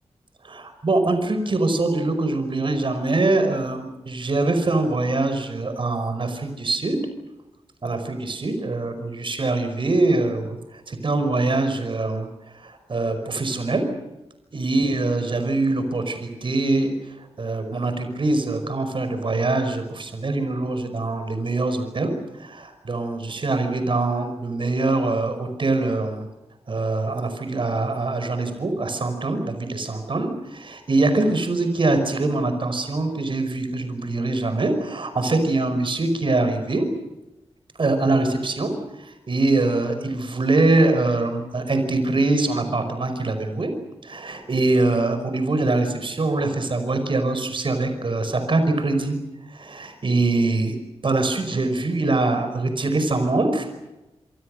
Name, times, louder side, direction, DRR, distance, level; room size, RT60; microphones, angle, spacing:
voice 1, 0.4-7.0 7.8-13.9 14.5-26.3 26.7-36.9 37.8-43.7 44.0-49.2 49.4-50.8 51.0-53.7, right 2 dB, 50° right, 8 dB, 5.3 m, -23 dB
27.5 x 25.0 x 6.6 m, 0.99 s
wide cardioid pair, 85°, 11 cm